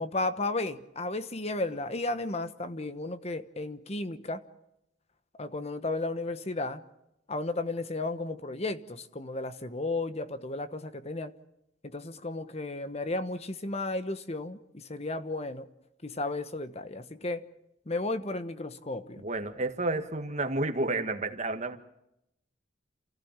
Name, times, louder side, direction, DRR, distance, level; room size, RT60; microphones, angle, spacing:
voice 1, 0.0-4.4 5.4-6.8 7.3-11.3 11.8-15.7 16.0-17.4 17.9-19.2, left 2 dB, 35° left, 11 dB, 1.1 m, -34 dB
voice 2, 19.2-21.8, right 2 dB, 40° right, 6 dB, 1.8 m, -31 dB
29.0 x 16.0 x 7.4 m, 0.83 s
head